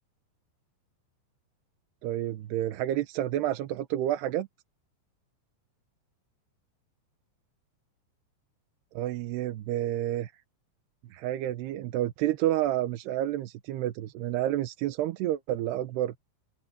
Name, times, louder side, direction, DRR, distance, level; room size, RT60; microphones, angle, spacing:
voice 1, 2.0-4.5 8.9-10.3 11.1-16.1, right 13 dB, 75° right, 3.0 m, -29 dB
open air
omnidirectional pair, 4.9 m